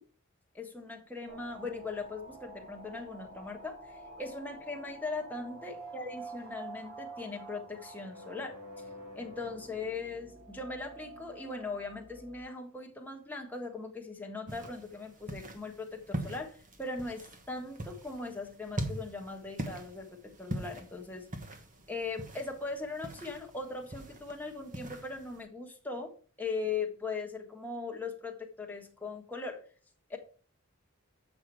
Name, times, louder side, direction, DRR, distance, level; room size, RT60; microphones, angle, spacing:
voice 1, 0.5-8.6 9.1-21.3 21.9-26.1 26.4-29.6 30.1-30.2, left 3 dB, 10° left, 1 dB, 1.5 m, -39 dB
sound 1, 1.3-12.4, right 2 dB, 85° right, 3.7 m, -48 dB
sound 2, 14.5-25.4, right 1 dB, 40° right, 1.3 m, -42 dB
8.2 x 5.9 x 4.6 m, 0.41 s
head